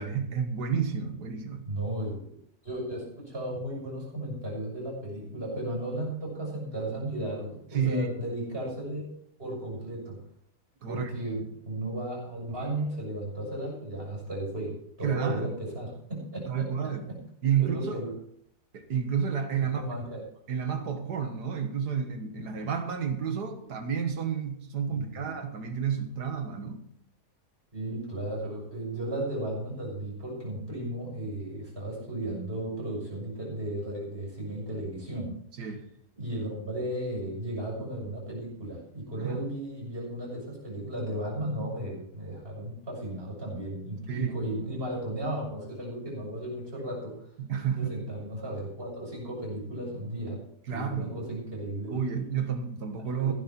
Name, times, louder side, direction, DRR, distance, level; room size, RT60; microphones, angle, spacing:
voice 1, 0.0-1.7 7.7-8.1 10.8-11.1 15.0-15.5 16.5-17.2 17.4-18.0 18.7-19.9 20.5-26.9 35.6-35.8 39.2-39.4 44.1-44.3 47.4-47.9 50.7-51.2 51.9-53.3, right 7 dB, 85° right, 7 dB, 2.1 m, -30 dB
voice 2, 1.6-2.3 2.6-9.1 9.4-10.2 10.9-17.2 17.6-18.1 19.6-20.2 24.9-25.3 27.7-35.3 36.2-47.2 47.7-50.4 50.7-52.2 53.1-53.3, right 1 dB, 35° right, -2 dB, 6.9 m, -35 dB
15.5 x 11.0 x 4.5 m, 0.67 s
omnidirectional pair, 1.7 m